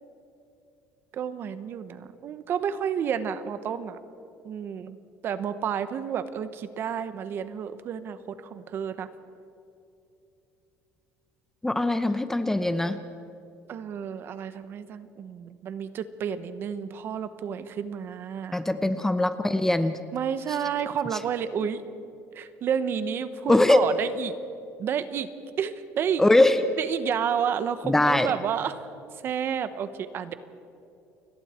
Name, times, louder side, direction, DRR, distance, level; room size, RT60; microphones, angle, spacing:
voice 1, 1.1-4.0 4.4-5.0 5.2-9.1 13.7-18.6 20.1-21.8 22.3-24.4 24.8-25.3 25.6-26.2 26.8-28.7 29.2-30.3, right 8 dB, 45° right, 12 dB, 1.1 m, -30 dB
voice 2, 11.6-13.0 18.5-20.0 23.5-23.8 26.2-26.6 27.8-28.3, left 1 dB, 5° left, 10 dB, 0.8 m, -21 dB
29.5 x 21.0 x 4.5 m, 2.7 s
cardioid pair, 140°, 5 cm